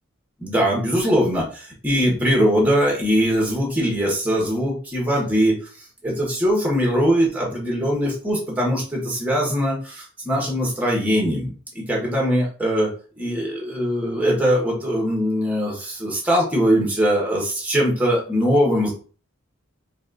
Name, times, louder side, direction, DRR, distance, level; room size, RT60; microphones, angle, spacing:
voice 1, 0.4-5.5 6.0-12.9 13.2-18.9, equal, 10° right, -2 dB, 1.4 m, -21 dB
4.1 x 2.5 x 3.9 m, 0.39 s
head